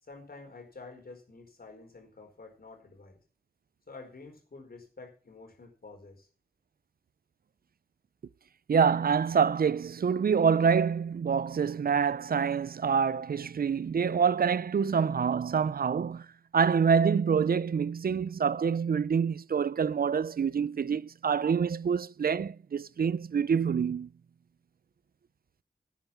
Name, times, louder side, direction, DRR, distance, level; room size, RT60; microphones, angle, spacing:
voice 1, 0.0-3.2 3.9-6.3, left 3 dB, 65° left, 4.6 m, -49 dB
voice 2, 8.7-16.3 16.5-24.1, right 6 dB, 65° right, 0.5 m, -26 dB
11.5 x 9.1 x 6.0 m
cardioid pair, 45°, 16 cm